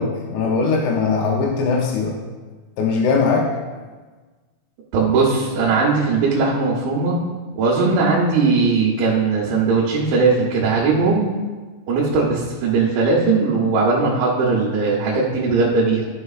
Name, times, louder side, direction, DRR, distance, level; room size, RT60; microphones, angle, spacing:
voice 1, 0.0-2.2 2.8-3.5, left 4 dB, 90° left, 1 dB, 2.3 m, -20 dB
voice 2, 4.9-7.2 7.5-11.3 11.9-16.1, right 4 dB, 80° right, -5 dB, 3.2 m, -19 dB
13.0 x 6.2 x 2.4 m, 1.4 s
omnidirectional pair, 5.5 m